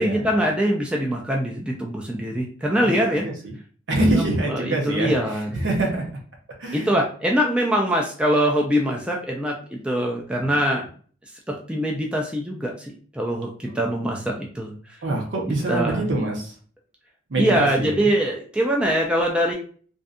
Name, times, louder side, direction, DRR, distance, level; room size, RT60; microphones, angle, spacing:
voice 1, 0.0-3.2 4.1-5.5 6.7-10.8 11.5-14.7 15.7-16.1 17.4-19.5, equal, 5° right, -1 dB, 0.3 m, -23 dB
voice 2, 2.8-3.5 3.9-6.1 6.6-7.0 10.4-10.5 15.0-16.5 17.3-18.1, right 2 dB, 70° right, 0 dB, 0.8 m, -25 dB
2.6 x 2.2 x 2.4 m, 0.44 s
head